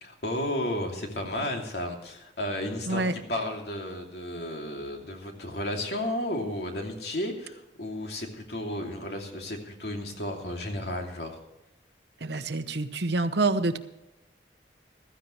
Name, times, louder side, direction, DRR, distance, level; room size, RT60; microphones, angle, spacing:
voice 1, 0.0-11.4, left 1 dB, 65° left, 2 dB, 2.7 m, -33 dB
voice 2, 12.2-13.8, right 3 dB, 70° right, 10 dB, 1.0 m, -27 dB
15.0 x 14.0 x 3.2 m, 0.96 s
head